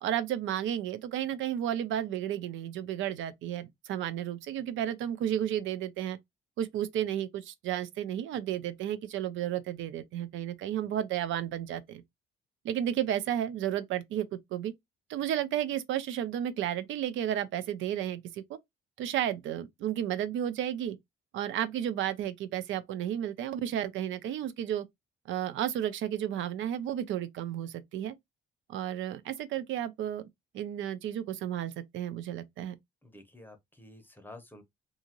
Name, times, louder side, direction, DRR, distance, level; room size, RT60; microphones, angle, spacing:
voice 1, 0.0-6.2 6.6-12.0 12.6-14.7 15.1-18.6 19.0-21.0 21.3-24.8 25.3-28.1 28.7-30.2 30.5-32.8, right 11 dB, 80° right, 0.5 m, -32 dB
voice 2, 33.0-34.6, left 1 dB, 10° left, 0.7 m, -50 dB
2.7 x 2.4 x 2.8 m
cardioid pair, 90°, 20 cm